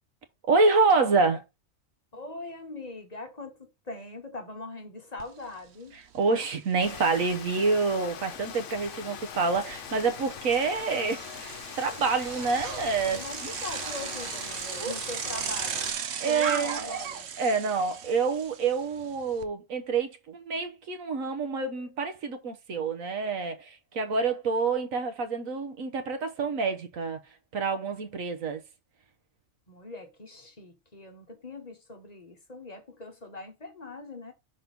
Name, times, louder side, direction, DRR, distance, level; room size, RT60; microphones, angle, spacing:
voice 1, 0.5-1.4 6.1-13.2 14.8-14.9 16.2-17.0 17.4-27.2 27.5-28.6, right 4 dB, 80° right, 1.4 m, -27 dB
voice 2, 2.1-6.0 13.1-15.9 16.2-17.3 29.7-34.3, left 2 dB, 35° left, 1.1 m, -41 dB
Bicycle, 5.2-5.3 5.7-19.4, right 7 dB, 60° right, 1.0 m, -38 dB
Rain, 6.8-15.9, left 9 dB, 70° left, 1.0 m, -42 dB
6.0 x 4.0 x 5.2 m
omnidirectional pair, 1.4 m